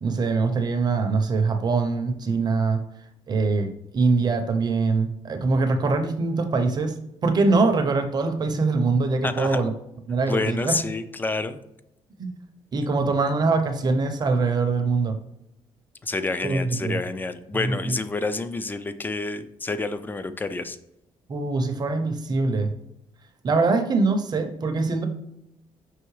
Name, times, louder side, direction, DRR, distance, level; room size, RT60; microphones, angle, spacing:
voice 1, 0.0-2.8 3.3-7.0 7.2-9.7 10.1-10.8 12.2-12.3 12.7-15.2 16.4-17.0 17.5-18.0 21.3-22.7 23.4-25.1, right 3 dB, 35° right, 6 dB, 0.6 m, -23 dB
voice 2, 9.2-9.6 10.3-11.6 16.0-20.8, left 3 dB, 15° left, 11 dB, 0.3 m, -28 dB
5.6 x 3.0 x 3.1 m, 0.80 s
cardioid pair, 105°, 11 cm